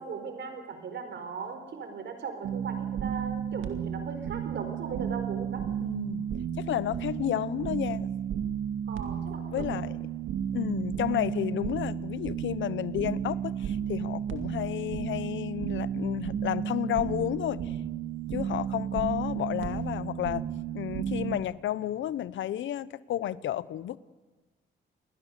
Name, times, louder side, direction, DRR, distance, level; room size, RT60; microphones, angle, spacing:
voice 1, 0.0-5.6 8.9-9.7, right 5 dB, 65° right, 4.5 m, -38 dB
sound 1, 2.4-21.4, right 9 dB, 85° right, 2.1 m, -33 dB
voice 2, 5.8-6.3 6.6-8.1 9.5-10.0 10.5-17.8 18.3-20.5 20.7-24.0, left 12 dB, 75° left, 0.8 m, -31 dB
28.0 x 20.0 x 6.7 m
cardioid pair, 85°, 20 cm